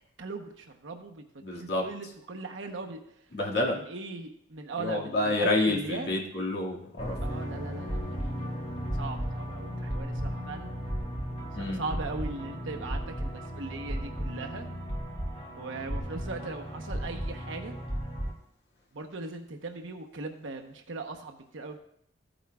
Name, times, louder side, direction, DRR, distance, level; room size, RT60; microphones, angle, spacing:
voice 1, 0.2-3.0 3.5-6.1 7.2-8.4 8.9-10.7 11.5-14.7 15.5-17.8 18.9-21.8, right 3 dB, 85° right, 3 dB, 0.9 m, -39 dB
voice 2, 1.4-1.8 3.3-3.8 4.8-7.4 11.6-11.8, left 2 dB, 60° left, -3 dB, 2.0 m, -29 dB
sound 1, 7.0-18.3, equal, 35° left, 1.8 m, -35 dB
15.0 x 9.0 x 2.3 m, 0.72 s
head